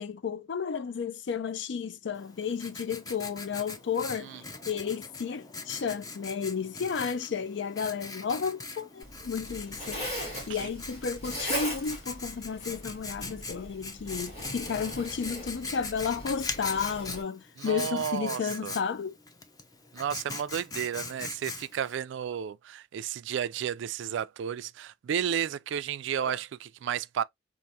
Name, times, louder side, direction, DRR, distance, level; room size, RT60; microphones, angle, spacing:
voice 1, 0.0-10.0 10.5-19.1 26.2-26.4, left 6 dB, 65° left, 0.4 m, -33 dB
Writing, 2.1-22.0, left 3 dB, 20° left, 0.6 m, -41 dB
Zipper (clothing), 9.0-17.2, equal, 35° left, 2.7 m, -39 dB
voice 2, 17.6-18.8 19.9-27.2, right 8 dB, 70° right, 0.3 m, -32 dB
4.6 x 2.5 x 2.7 m
head